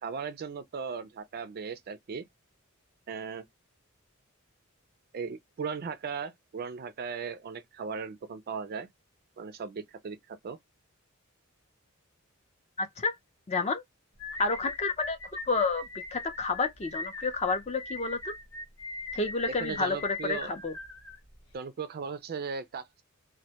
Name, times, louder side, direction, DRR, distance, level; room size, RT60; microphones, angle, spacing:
voice 1, 0.0-2.2 3.1-3.4 5.1-8.9 9.4-10.6 19.5-20.5 21.5-23.0, right 5 dB, 45° right, 0.4 m, -37 dB
voice 2, 12.8-13.1 13.5-13.8 14.4-15.2 15.5-15.8 16.1-18.3 19.1-20.7, left 3 dB, 30° left, 0.5 m, -29 dB
sound 1, 14.2-21.6, left 3 dB, 80° left, 0.9 m, -41 dB
2.1 x 2.1 x 2.7 m
head